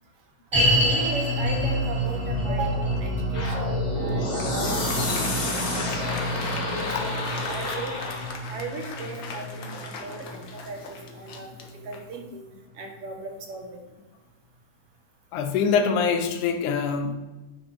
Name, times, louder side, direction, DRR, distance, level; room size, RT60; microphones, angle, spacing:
sound 1, 0.5-11.8 12.1-12.2 12.8-12.9, equal, 10° right, 3.2 m, -28 dB
voice 1, 0.5-6.2 6.6-8.2 8.5-12.4 12.8-13.8, right 3 dB, 55° right, 2.1 m, -37 dB
sound 2, 3.3-8.4, left 2 dB, 35° left, 2.6 m, -30 dB
Applause, 4.1-12.2, left 4 dB, 55° left, 1.4 m, -39 dB
voice 2, 15.3-17.1, left 6 dB, 80° left, 2.4 m, -24 dB
10.5 x 9.0 x 3.6 m
omnidirectional pair, 3.7 m